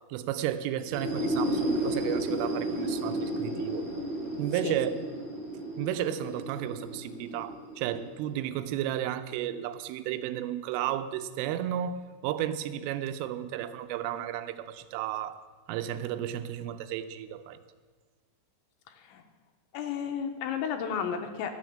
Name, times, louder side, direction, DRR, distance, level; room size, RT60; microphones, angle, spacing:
voice 1, 0.1-3.9 4.4-4.9 5.8-15.4 15.7-17.6, right 11 dB, 85° right, 11 dB, 3.2 m, -33 dB
sound 1, 0.8-8.4, right 1 dB, 30° left, 1.7 m, -33 dB
voice 2, 18.9-19.2 19.7-21.5, left 7 dB, 80° left, 6 dB, 2.9 m, -33 dB
12.5 x 7.7 x 7.2 m, 1.5 s
omnidirectional pair, 5.6 m